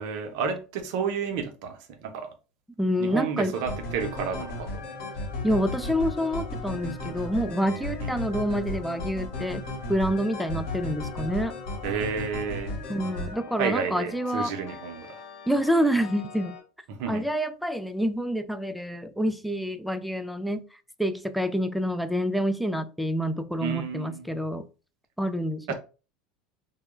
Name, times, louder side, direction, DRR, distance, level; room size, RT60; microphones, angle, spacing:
voice 1, 0.0-2.3 3.0-4.8 8.0-8.2 11.8-12.7 13.6-15.2 16.9-17.3 23.6-24.4 25.7-25.8, right 6 dB, 65° right, 0.6 m, -31 dB
voice 2, 2.8-3.6 5.4-11.6 12.9-14.5 15.5-16.6 17.1-20.6 21.0-24.6 25.2-25.7, equal, ahead, 0.3 m, -27 dB
sound 1, 3.5-16.6, left 2 dB, 60° left, 1.2 m, -36 dB
2.2 x 2.1 x 3.0 m
hypercardioid pair, 95°, 4 cm